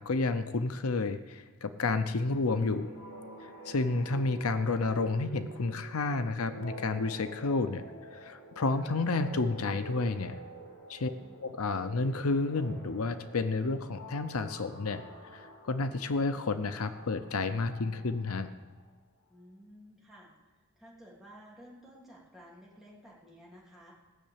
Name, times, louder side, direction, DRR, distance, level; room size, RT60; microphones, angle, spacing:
voice 1, 0.0-2.9 3.4-7.8 8.1-10.4 10.9-11.1 11.4-15.0 15.3-18.5, left 3 dB, 90° left, 10 dB, 0.7 m, -31 dB
sound 1, 2.4-18.8, right 2 dB, 50° left, 4.7 m, -48 dB
voice 2, 11.1-11.5 19.3-20.3 20.8-23.9, equal, ahead, -5 dB, 3.1 m, -53 dB
17.5 x 6.5 x 8.7 m, 1.3 s
head